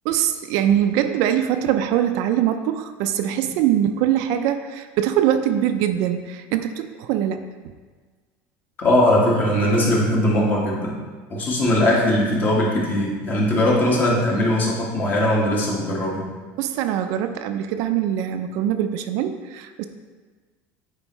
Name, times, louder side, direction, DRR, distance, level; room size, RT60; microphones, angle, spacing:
voice 1, 0.0-7.7 16.6-19.8, right 10 dB, 60° right, 8 dB, 0.4 m, -22 dB
voice 2, 8.8-11.0 11.3-16.3, left 1 dB, 30° left, -3 dB, 1.5 m, -20 dB
8.5 x 4.5 x 3.1 m, 1.4 s
cardioid pair, 155°, 7 cm